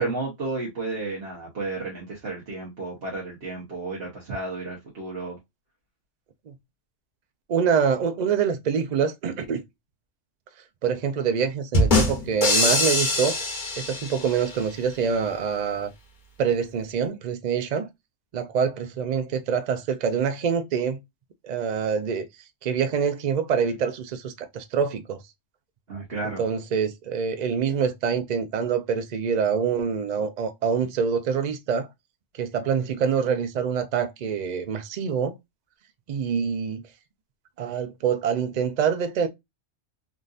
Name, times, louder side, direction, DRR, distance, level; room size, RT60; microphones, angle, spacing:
voice 1, 0.0-5.4 25.9-26.4, right 3 dB, 50° right, 1.2 m, -32 dB
voice 2, 7.5-9.6 10.8-13.4 13.8-15.9 16.4-17.9 18.3-21.0 21.4-22.3 22.6-25.2 26.2-31.9 32.3-35.3 36.1-36.8 37.6-39.3, right 6 dB, 85° right, 0.3 m, -25 dB
sound 1, 11.7-14.6, left 2 dB, 40° left, 1.1 m, -23 dB
3.7 x 2.6 x 2.4 m
omnidirectional pair, 1.3 m